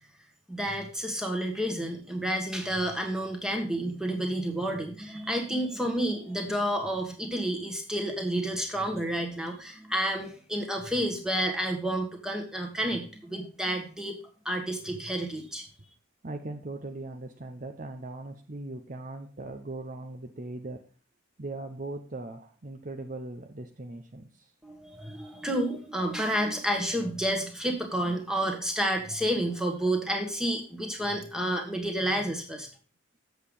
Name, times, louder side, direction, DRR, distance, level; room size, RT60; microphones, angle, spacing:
voice 1, 0.5-14.2 14.4-15.6 24.6-32.7, right 1 dB, 5° right, 2 dB, 1.4 m, -30 dB
voice 2, 16.2-20.8 21.4-24.5, right 2 dB, 40° right, 4 dB, 0.7 m, -39 dB
8.0 x 6.7 x 5.2 m, 0.38 s
head